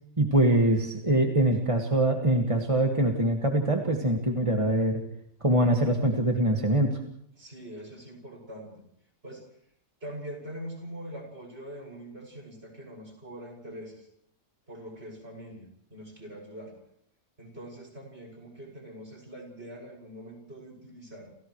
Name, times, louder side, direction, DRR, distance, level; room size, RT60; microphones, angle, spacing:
voice 1, 0.2-5.0 5.4-7.0, right 1 dB, 20° right, 1 dB, 2.0 m, -23 dB
voice 2, 7.4-8.8 9.2-9.4 10.0-14.1 14.7-16.7 17.4-21.3, equal, 45° right, 0 dB, 7.3 m, -43 dB
30.0 x 29.5 x 3.3 m, 0.69 s
omnidirectional pair, 1.5 m